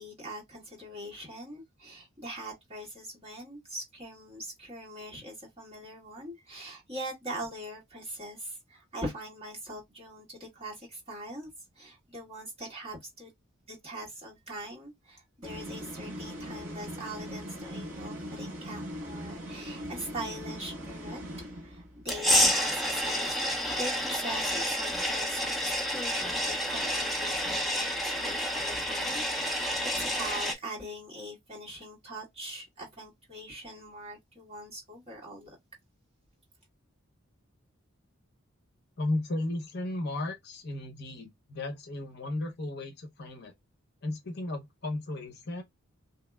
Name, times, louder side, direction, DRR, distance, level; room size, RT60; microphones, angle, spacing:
voice 1, 0.0-11.5 11.7-13.3 13.7-21.2 21.6-35.5, right 1 dB, 30° right, 1.7 m, -42 dB
sound 1, 15.4-22.0, equal, 70° right, 1.5 m, -40 dB
sound 2, 22.1-30.5, equal, ahead, 0.5 m, -29 dB
voice 2, 39.0-43.5 44.0-45.6, left 2 dB, 50° left, 0.7 m, -35 dB
2.9 x 2.8 x 2.2 m
head